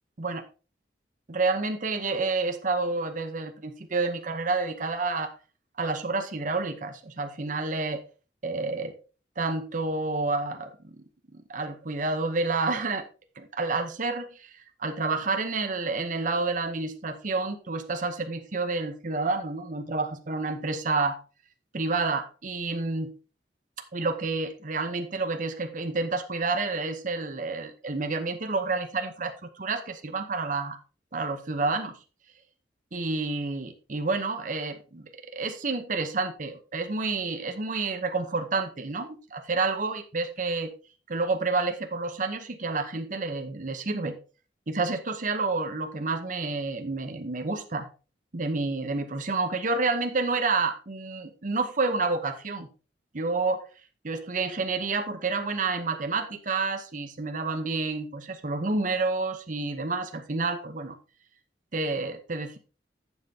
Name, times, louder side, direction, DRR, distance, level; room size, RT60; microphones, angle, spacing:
voice 1, 1.3-5.3 5.8-8.0 8.4-9.0 9.4-11.0 11.3-13.1 13.4-21.2 21.7-23.1 23.9-30.8 31.1-32.0 32.9-40.7 41.1-44.2 44.7-47.9 48.3-52.7 53.1-53.6 54.0-61.0 61.7-62.6, right 3 dB, 45° right, 0.9 m, -29 dB
11.5 x 7.3 x 2.8 m
head